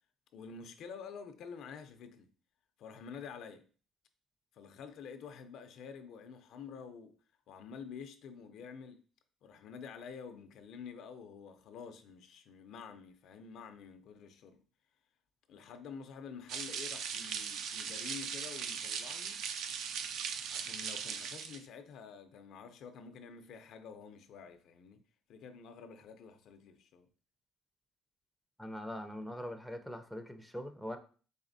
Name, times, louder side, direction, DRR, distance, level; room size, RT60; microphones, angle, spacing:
voice 1, 0.3-2.3 2.8-3.7 4.5-7.2 7.5-9.0 9.4-14.6 15.5-19.4 20.5-25.0 25.3-27.1, left 6 dB, 65° left, 0.4 m, -49 dB
sound 1, 16.5-21.6, right 7 dB, 70° right, 0.4 m, -39 dB
voice 2, 28.6-31.0, equal, ahead, 0.4 m, -42 dB
4.1 x 3.2 x 2.6 m
cardioid pair, 120°, 0 cm